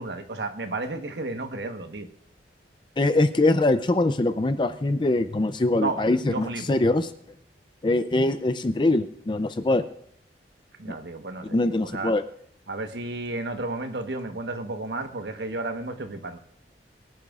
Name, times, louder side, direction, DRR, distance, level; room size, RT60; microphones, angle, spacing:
voice 1, 0.0-2.1 5.8-6.8 10.8-12.1 12.7-16.4, right 2 dB, 70° right, 1.2 m, -32 dB
voice 2, 3.0-7.1 7.8-9.8 10.9-11.0 11.5-12.2, left 2 dB, 25° left, 0.4 m, -23 dB
23.0 x 11.0 x 2.4 m
head